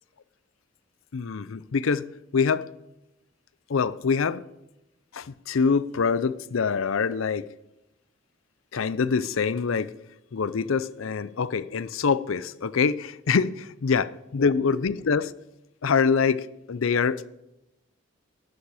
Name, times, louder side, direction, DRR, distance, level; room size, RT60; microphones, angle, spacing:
voice 1, 1.1-2.6 3.7-4.4 5.1-7.5 8.7-9.9 10.3-15.3 15.8-17.3, left 5 dB, 75° left, 0.5 m, -25 dB
12.5 x 10.0 x 4.9 m
head